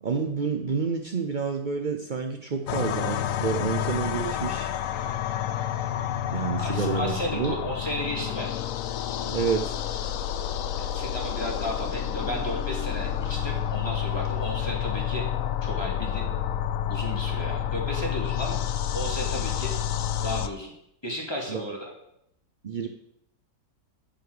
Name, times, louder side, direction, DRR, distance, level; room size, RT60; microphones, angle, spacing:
voice 1, 0.0-4.7 6.3-7.5 9.2-9.8 21.5-21.7 22.6-22.9, right 5 dB, 65° right, 4 dB, 0.4 m, -29 dB
sound 1, 2.7-20.5, left 10 dB, 65° left, 0.8 m, -29 dB
voice 2, 6.6-8.5 10.8-15.3 15.6-16.3 16.9-18.6 18.9-19.7 20.2-20.7 21.0-21.9, equal, 15° left, -1 dB, 2.4 m, -33 dB
10.0 x 5.8 x 7.9 m, 0.76 s
omnidirectional pair, 1.9 m